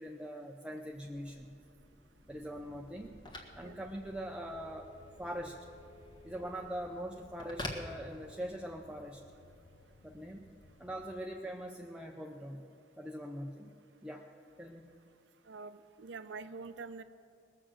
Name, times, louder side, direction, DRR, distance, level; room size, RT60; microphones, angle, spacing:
voice 1, 0.0-1.5 2.3-3.2 3.5-4.9 5.2-5.7 6.2-9.2 10.0-10.5 10.8-12.7 13.0-13.7 14.0-14.3 14.6-14.9, equal, 5° right, 1 dB, 0.6 m, -42 dB
Telephone, 0.9-8.7, left 1 dB, 25° left, 1.6 m, -49 dB
sound 1, 2.3-11.2, left 2 dB, 75° left, 0.9 m, -61 dB
voice 2, 15.5-17.0, right 4 dB, 80° right, 11 dB, 0.6 m, -45 dB
20.0 x 7.6 x 6.3 m, 2.5 s
head